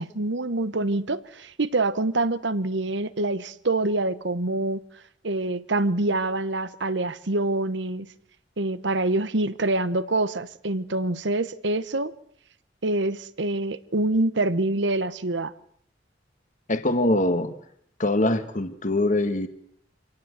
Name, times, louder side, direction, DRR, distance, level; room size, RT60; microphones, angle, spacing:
voice 1, 0.0-4.8 5.2-8.1 8.6-12.1 12.8-15.5, right 2 dB, 70° right, 1.1 m, -26 dB
voice 2, 16.7-17.5 18.0-19.5, left 1 dB, 45° left, 1.6 m, -23 dB
26.5 x 18.0 x 8.1 m
head